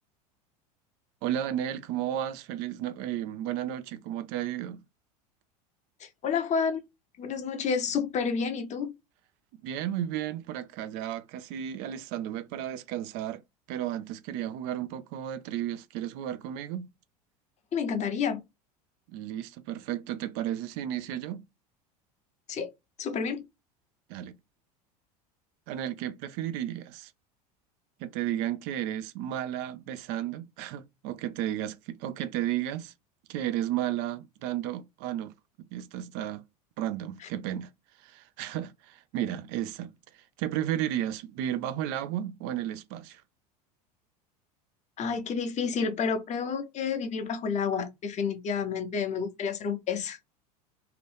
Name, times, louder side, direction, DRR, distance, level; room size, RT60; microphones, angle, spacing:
voice 1, 1.2-4.8 9.6-13.4 13.7-16.9 19.1-21.4 24.1-24.4 25.7-27.1 28.0-32.9 33.3-35.3 35.7-36.4 36.8-37.7 38.0-39.9 40.4-43.2, right 11 dB, 55° right, 0.6 m, -33 dB
voice 2, 6.0-6.8 7.2-8.9 17.7-18.4 22.5-22.7 23.0-23.4 45.0-50.2, left 6 dB, 35° left, 0.9 m, -30 dB
2.9 x 2.5 x 3.3 m
hypercardioid pair, 85°, 20 cm